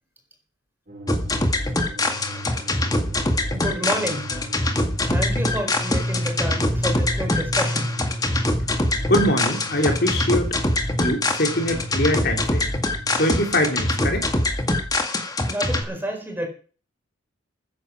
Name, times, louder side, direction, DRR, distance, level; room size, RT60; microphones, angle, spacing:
sound 1, 0.9-13.6, equal, 45° right, 4.9 m, -33 dB
sound 2, 1.1-15.8, left 2 dB, 20° left, 1.9 m, -24 dB
voice 1, 3.5-4.3 5.0-7.9 15.5-16.5, equal, 10° right, 3 dB, 4.4 m, -29 dB
voice 2, 9.1-10.6 11.0-12.7 13.2-14.3, left 1 dB, 55° left, 3 dB, 3.3 m, -23 dB
14.0 x 10.0 x 6.1 m, 0.38 s
head